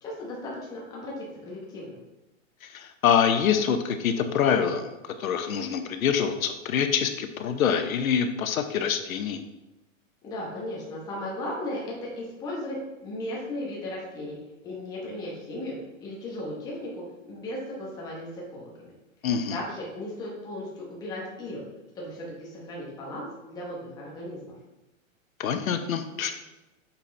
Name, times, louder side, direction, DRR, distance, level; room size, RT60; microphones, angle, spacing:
voice 1, 0.0-2.0 10.2-12.8 13.0-14.4 14.6-18.9 19.5-21.6 21.9-24.5, left 1 dB, 10° left, -4 dB, 0.9 m, -36 dB
voice 2, 2.6-9.4 19.2-19.6 25.4-26.3, left 7 dB, 85° left, 7 dB, 0.9 m, -25 dB
8.1 x 4.2 x 3.3 m, 1.0 s
hypercardioid pair, 170°, 41 cm